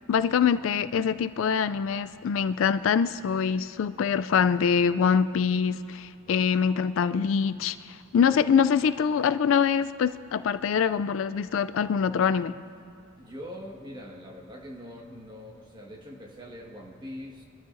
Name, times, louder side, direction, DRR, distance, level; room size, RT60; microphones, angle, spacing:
voice 1, 0.1-12.6, left 6 dB, 65° left, 13 dB, 0.3 m, -24 dB
voice 2, 13.2-17.4, equal, 20° right, 0 dB, 1.5 m, -43 dB
23.5 x 13.0 x 2.6 m, 2.7 s
head